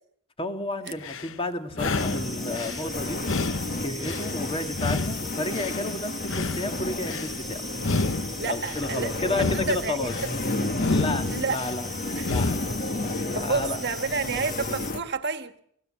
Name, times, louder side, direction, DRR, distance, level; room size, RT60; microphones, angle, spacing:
voice 1, 0.4-3.3 3.8-7.7 8.4-10.1 10.9-11.9 12.3-12.7 13.0-13.8, left 2 dB, 25° left, 2.0 m, -32 dB
sound 1, 0.9-1.3 1.7-2.8 3.2-4.3 4.7-5.8 6.2-7.3 7.8-8.8 9.3-10.3 10.7-11.7 12.2-12.8, left 3 dB, 65° left, 1.0 m, -30 dB
sound 2, 1.8-15.0, left 2 dB, 45° left, 1.7 m, -32 dB
sound 3, 2.0-14.9, right 1 dB, ahead, 2.0 m, -41 dB
voice 2, 8.3-10.3 11.3-11.6 12.2-12.4 13.3-15.5, right 4 dB, 55° right, 1.5 m, -30 dB
30.0 x 17.5 x 7.6 m
head